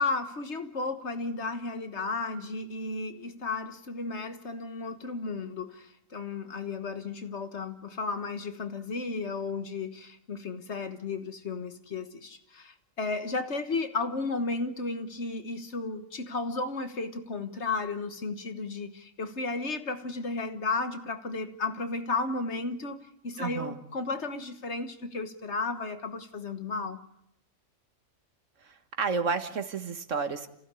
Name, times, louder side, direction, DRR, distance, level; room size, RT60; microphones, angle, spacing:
voice 1, 0.0-27.0, left 3 dB, 60° left, 1.7 m, -34 dB
voice 2, 23.4-23.8 28.6-30.5, right 5 dB, 70° right, 1.8 m, -31 dB
29.5 x 15.5 x 8.3 m
omnidirectional pair, 1.4 m